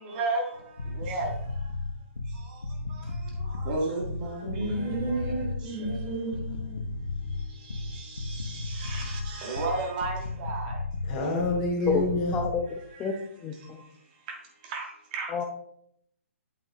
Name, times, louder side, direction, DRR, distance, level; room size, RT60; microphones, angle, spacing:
voice 1, 0.0-0.4 1.0-1.3 3.7-5.3 5.8-6.4 6.7-6.8 8.3-10.8 11.9-12.0 14.7-14.9 15.1-15.3, right 2 dB, 35° right, 1 dB, 1.8 m, -32 dB
sound 1, 0.6-12.6, left 3 dB, 90° left, 1.0 m, -34 dB
voice 2, 4.4-6.4 11.1-12.3, left 1 dB, 30° left, -1 dB, 3.1 m, -30 dB
voice 3, 12.3-13.1 13.4-13.8 15.3-15.4, left 5 dB, 15° left, 2 dB, 0.7 m, -29 dB
8.5 x 5.4 x 3.5 m, 0.71 s
hypercardioid pair, 140°, 7 cm